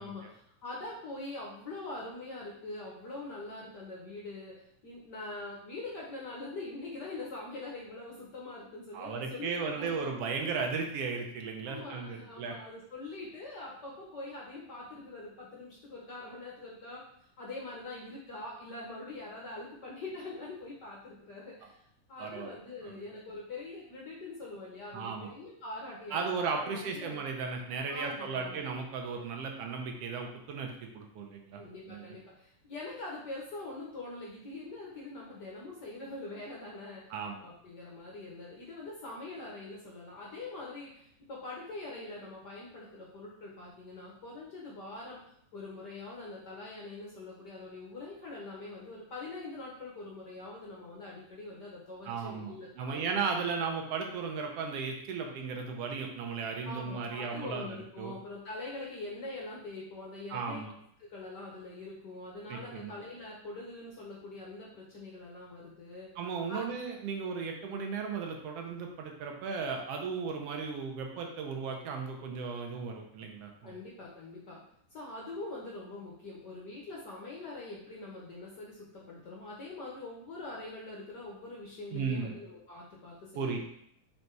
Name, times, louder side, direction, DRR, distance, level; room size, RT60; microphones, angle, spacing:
voice 1, 0.0-10.0 11.6-17.0 17.4-21.7 22.1-27.2 27.9-28.7 31.5-37.0 37.4-45.2 45.5-53.0 56.6-60.6 61.0-66.1 66.5-66.8 73.6-74.6 74.9-83.6, left 2 dB, 70° left, -4 dB, 1.0 m, -43 dB
voice 2, 8.9-12.5 22.2-22.5 22.8-22.9 24.9-25.3 26.1-31.6 31.9-32.0 37.1-37.4 52.0-57.7 58.0-58.1 60.3-60.7 62.5-63.0 66.2-73.8 81.9-82.4 83.4-83.6, right 5 dB, 70° right, 2 dB, 1.5 m, -35 dB
5.3 x 4.0 x 4.6 m, 0.71 s
omnidirectional pair, 3.5 m